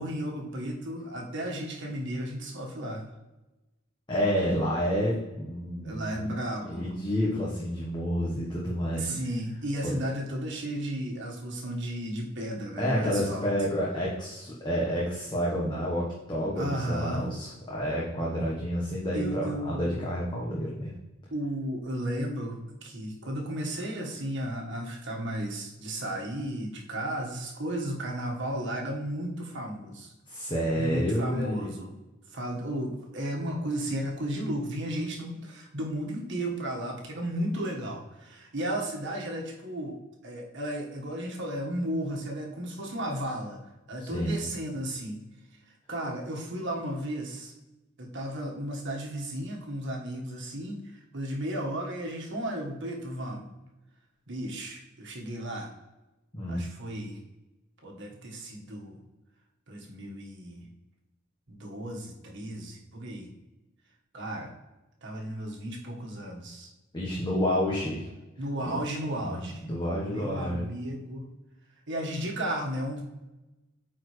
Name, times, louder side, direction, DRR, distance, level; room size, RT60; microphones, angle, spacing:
voice 1, 0.0-3.0 5.8-6.9 9.0-13.5 16.5-17.3 19.1-20.0 21.3-30.1 30.7-31.9 32.3-43.6 43.9-45.2 45.9-47.5 48.0-50.8 51.1-53.5 54.3-55.7 56.5-57.2 57.8-59.0 59.7-60.7 61.5-63.3 64.1-64.5 65.0-66.7 68.4-69.6 70.0-71.3 71.9-73.0, right 1 dB, 60° right, 0 dB, 1.6 m, -34 dB
voice 2, 4.1-6.3 6.6-9.1 9.8-10.0 12.8-20.9 30.3-31.7 44.0-44.4 56.3-56.6 66.9-68.0 68.6-68.7 69.2-70.6, equal, 25° left, -5 dB, 1.2 m, -29 dB
8.9 x 4.3 x 3.2 m, 1.0 s
head